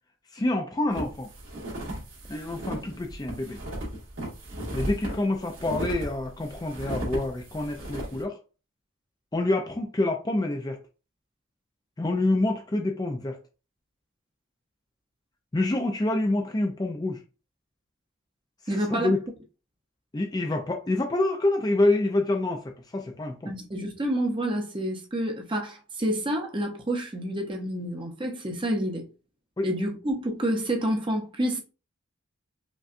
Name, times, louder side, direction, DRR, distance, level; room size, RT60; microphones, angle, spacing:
voice 1, 0.3-1.3 2.3-3.6 4.7-8.4 9.3-10.8 12.0-13.4 15.5-17.2 18.7-19.2 20.1-22.6 22.9-23.5 29.6-29.7, left 2 dB, 20° left, 0.4 m, -27 dB
sound 1, 0.9-8.2, right 1 dB, 80° right, 1.9 m, -36 dB
voice 2, 18.7-19.1 23.5-29.1 29.6-31.6, right 1 dB, 25° right, 0.6 m, -28 dB
5.1 x 2.3 x 2.5 m
head